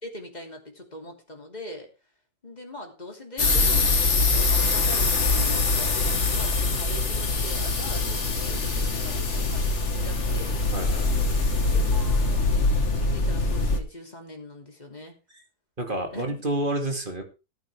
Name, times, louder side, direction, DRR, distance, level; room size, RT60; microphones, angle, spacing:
voice 1, 0.0-1.9 2.4-10.5 11.6-15.1 16.1-16.8, left 1 dB, 25° left, 2 dB, 3.1 m, -42 dB
sound 1, 3.4-13.8, left 3 dB, 45° left, 1.9 m, -23 dB
voice 2, 10.7-11.3 15.8-17.2, right 1 dB, 30° right, 4 dB, 2.5 m, -29 dB
18.0 x 9.3 x 3.5 m, 0.30 s
omnidirectional pair, 1.8 m